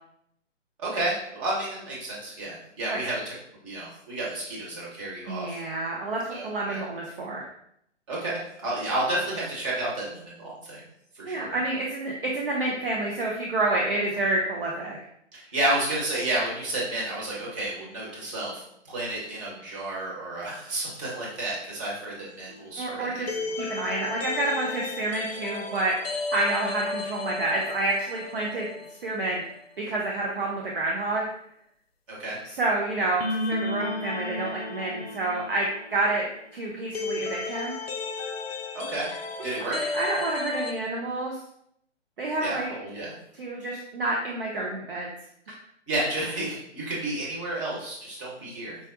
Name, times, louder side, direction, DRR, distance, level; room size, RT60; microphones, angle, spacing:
voice 1, 0.8-3.3 3.6-5.6 6.3-6.8 8.1-10.8 11.1-11.6 15.3-23.4 32.1-32.4 38.7-39.1 39.4-39.8 42.4-43.1 45.9-48.8, right 1 dB, 25° right, -5 dB, 1.1 m, -31 dB
voice 2, 5.3-7.5 11.3-15.0 22.8-23.3 23.6-25.9 26.3-28.7 29.0-29.4 29.8-31.2 32.4-36.3 36.5-37.7 39.7-41.4 42.2-42.7 43.3-45.1, right 2 dB, 50° right, -2 dB, 0.6 m, -28 dB
sound 1, 22.5-29.2 29.4-29.5 33.2-40.7, left 3 dB, 55° left, 0.5 m, -34 dB
4.7 x 2.1 x 2.6 m, 0.73 s
figure-of-eight pair, 130°, 37 cm